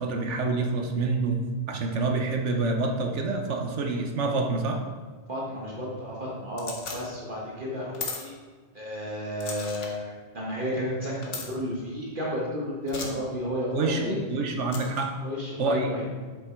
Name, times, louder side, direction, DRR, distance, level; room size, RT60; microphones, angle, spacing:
voice 1, 0.0-1.4 1.7-4.8 13.7-15.2 15.6-15.9, right 3 dB, 80° right, 4 dB, 1.3 m, -27 dB
voice 2, 5.3-8.3 8.7-14.2 15.2-16.0, equal, 45° right, -4 dB, 1.6 m, -32 dB
sound 1, 6.6-7.0 7.9-8.2 9.4-9.9 11.2-11.5 12.9-13.1 14.7-15.1, left 4 dB, 85° left, 1.5 m, -36 dB
7.9 x 7.0 x 4.5 m, 1.5 s
omnidirectional pair, 1.2 m